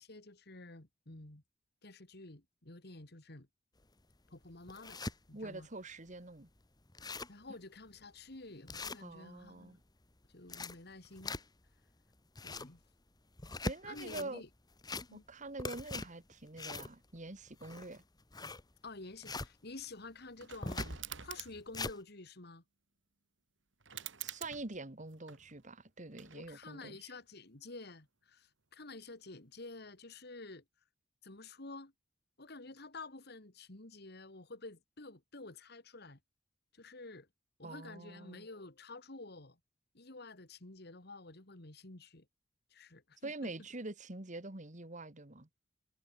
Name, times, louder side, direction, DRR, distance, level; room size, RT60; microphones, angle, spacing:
voice 1, 0.0-1.4 1.8-3.5 4.3-5.0 5.3-5.7 7.3-9.8 10.3-11.4 12.4-12.8 13.8-14.5 15.1-15.2 18.8-22.6 26.3-30.6 31.2-31.9 32.4-36.2 36.7-37.3 37.6-39.6 39.9-42.3 42.7-43.5, left 3 dB, 60° left, 2.4 m, -50 dB
sound 1, 3.8-3.9 4.4-5.2 5.7-5.8 6.1-6.2 6.6-6.7 6.8-7.4 7.9-8.0 8.7-9.5 10.2-11.7 12.2-12.8 13.3-14.3 14.7-15.3 15.6-19.5 20.6-21.0 21.4-22.0, left 3 dB, 20° left, 1.4 m, -42 dB
voice 2, 5.3-6.5 9.0-9.8 13.6-14.4 15.1-18.0 24.2-27.0 37.6-38.5 43.2-45.5, right 2 dB, 40° right, 2.1 m, -45 dB
sound 2, 20.4-21.8 23.8-25.7 26.1-26.8, right 7 dB, 80° right, 3.1 m, -46 dB
head